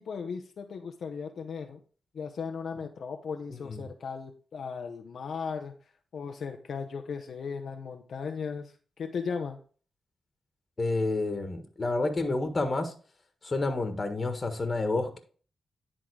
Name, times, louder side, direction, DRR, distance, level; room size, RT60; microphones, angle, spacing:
voice 1, 0.0-1.8 2.1-5.7 6.1-9.6, left 5 dB, 70° left, 5 dB, 0.7 m, -36 dB
voice 2, 10.8-12.9 13.4-15.2, left 2 dB, 35° left, 6 dB, 1.4 m, -29 dB
10.5 x 3.7 x 4.7 m, 0.40 s
cardioid pair, 65°, 0 cm